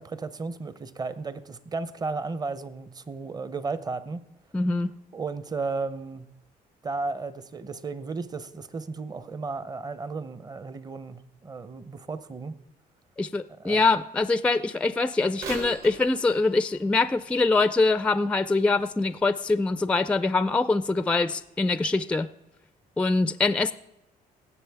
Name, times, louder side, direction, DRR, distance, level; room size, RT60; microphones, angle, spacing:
voice 1, 0.0-4.2 5.1-6.3 6.8-12.5 13.6-13.8, right 4 dB, 25° right, 15 dB, 0.7 m, -34 dB
voice 2, 4.5-4.9 13.2-22.3 23.0-23.7, left 3 dB, 5° left, 14 dB, 0.4 m, -24 dB
Bird vocalization bird call bird song / Telephone, 15.4-19.1 19.7-19.8 20.6-20.7 21.4-21.5, right 3 dB, 65° right, 3.0 m, -43 dB
18.0 x 7.7 x 3.5 m, 0.90 s
cardioid pair, 110°, 16 cm